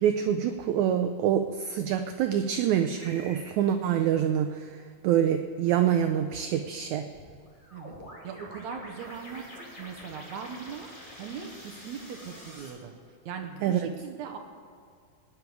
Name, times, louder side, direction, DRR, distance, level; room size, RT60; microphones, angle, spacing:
voice 1, 0.0-4.7 5.0-7.1 13.6-13.9, right 9 dB, 90° right, 7 dB, 1.6 m, -26 dB
sound 1, 3.0-3.4 7.1-12.7, equal, 15° left, 2.0 m, -46 dB
voice 2, 8.2-10.9 11.2-12.9 13.3-14.4, right 7 dB, 70° right, 4 dB, 1.9 m, -40 dB
18.0 x 9.9 x 4.8 m, 2.3 s
omnidirectional pair, 4.0 m